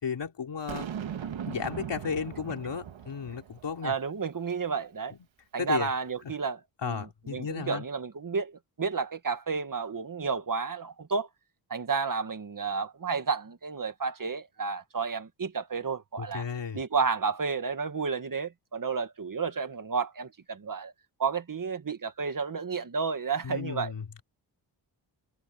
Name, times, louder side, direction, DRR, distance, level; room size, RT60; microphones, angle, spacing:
voice 1, 0.0-0.9 1.5-3.9 5.6-5.9 6.8-7.8 16.2-16.8 23.4-24.2, left 6 dB, 65° left, 3.6 m, -34 dB
Boom, 0.7-4.0, right 8 dB, 80° right, 2.0 m, -39 dB
voice 2, 3.8-5.1 5.5-11.3 11.7-16.5 16.7-20.9 21.2-23.9, right 5 dB, 45° right, 2.0 m, -31 dB
cardioid pair, 85°, 46 cm